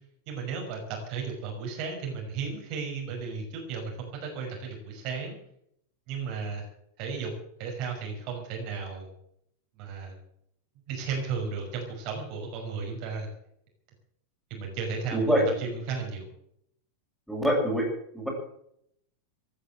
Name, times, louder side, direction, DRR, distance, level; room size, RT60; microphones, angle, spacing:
voice 1, 0.3-5.4 6.1-6.7 7.0-7.3 7.6-9.1 9.8-10.2 10.9-13.3 14.5-16.3, right 5 dB, 45° right, 1 dB, 5.8 m, -34 dB
voice 2, 15.1-15.5 17.3-17.8 18.1-18.3, equal, ahead, -2 dB, 7.6 m, -24 dB
15.5 x 11.5 x 7.7 m, 0.72 s
figure-of-eight pair, 90°, 0 cm